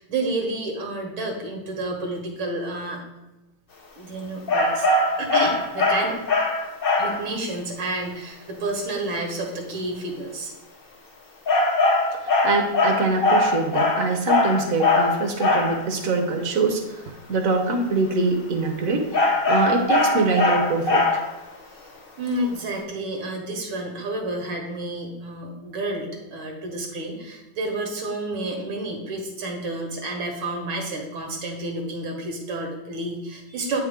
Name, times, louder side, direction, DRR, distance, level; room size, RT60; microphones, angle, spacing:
voice 1, 0.0-3.0 4.0-4.9 5.2-6.2 7.0-10.5 22.2-33.8, right 2 dB, 80° right, 2 dB, 2.1 m, -30 dB
sound 1, 4.5-7.2 11.5-15.8 19.1-21.4, left 2 dB, 70° left, 0.5 m, -21 dB
voice 2, 12.4-16.8 17.3-19.1 19.5-21.0, right 3 dB, 55° right, 4 dB, 1.1 m, -23 dB
8.8 x 4.7 x 3.6 m, 1.0 s
omnidirectional pair, 2.2 m